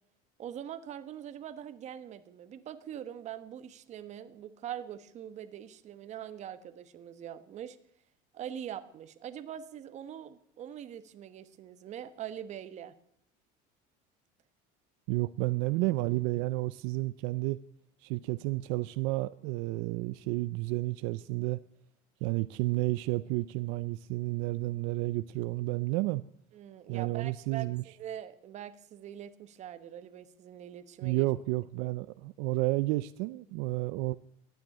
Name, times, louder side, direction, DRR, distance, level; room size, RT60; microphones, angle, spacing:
voice 1, 0.4-7.8 8.3-12.9 26.5-31.3, right 10 dB, 40° right, 11 dB, 1.2 m, -43 dB
voice 2, 15.1-17.6 18.0-21.6 22.2-26.2 26.9-27.8 31.0-34.2, right 20 dB, 75° right, 14 dB, 0.5 m, -31 dB
12.0 x 9.3 x 9.8 m, 0.70 s
cardioid pair, 140°, 18 cm